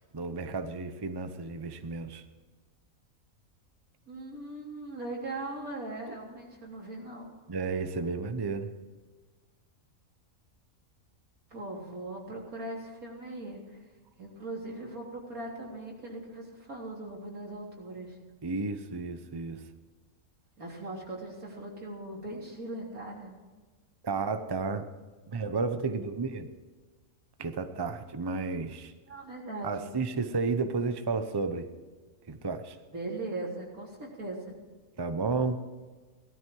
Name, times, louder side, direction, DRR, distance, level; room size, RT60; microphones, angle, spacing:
voice 1, 0.1-2.2 6.1-6.2 7.5-8.7 18.4-19.6 24.0-24.9 25.3-26.5 27.4-28.9 29.6-31.7 32.3-32.8 35.0-35.6, right 4 dB, 20° right, 9 dB, 0.7 m, -32 dB
voice 2, 4.1-7.3 11.5-13.8 14.2-18.2 20.6-23.4 29.1-29.9 32.9-34.5, right 2 dB, 85° right, -2 dB, 4.0 m, -39 dB
17.5 x 13.0 x 4.7 m, 1.4 s
omnidirectional pair, 1.5 m